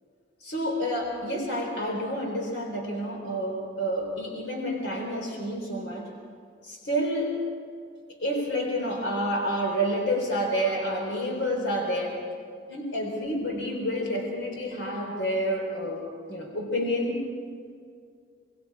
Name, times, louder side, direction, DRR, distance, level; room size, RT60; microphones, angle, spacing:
voice 1, 0.4-6.1 6.6-7.4 8.2-12.2 12.7-17.2, equal, 70° left, 0 dB, 4.0 m, -29 dB
27.0 x 20.5 x 4.9 m, 2.2 s
head